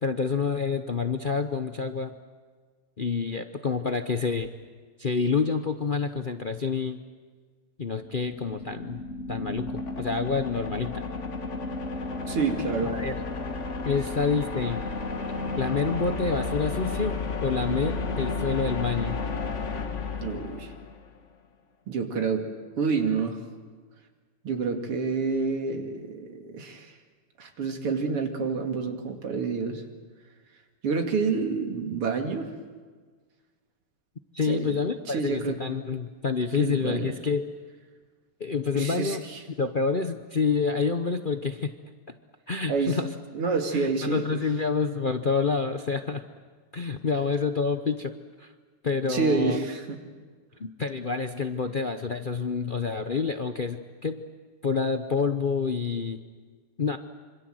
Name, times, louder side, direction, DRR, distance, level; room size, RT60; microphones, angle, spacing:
voice 1, 0.0-2.1 3.0-4.5 5.0-7.0 7.8-9.0 9.3-11.0 12.8-13.1 13.8-14.8 15.6-19.2 34.3-37.5 38.4-39.2 39.6-41.7 42.5-43.1 43.7-46.2 46.7-48.1 48.4-48.5 48.8-49.6 50.6-54.2 54.6-56.2 56.8-57.0, left 5 dB, 70° left, 7 dB, 0.4 m, -28 dB
sound 1, 8.0-21.1, left 3 dB, 35° left, 1.6 m, -32 dB
voice 2, 12.3-12.9 20.2-20.7 21.9-22.4 22.8-23.4 24.4-26.9 27.4-29.8 30.8-32.5 34.5-34.8 35.1-35.6 36.6-37.1 38.7-39.4 42.7-43.0 43.3-44.2 49.1-50.0, right 4 dB, 85° right, 4 dB, 3.3 m, -28 dB
26.5 x 26.0 x 7.8 m, 1.5 s
omnidirectional pair, 2.4 m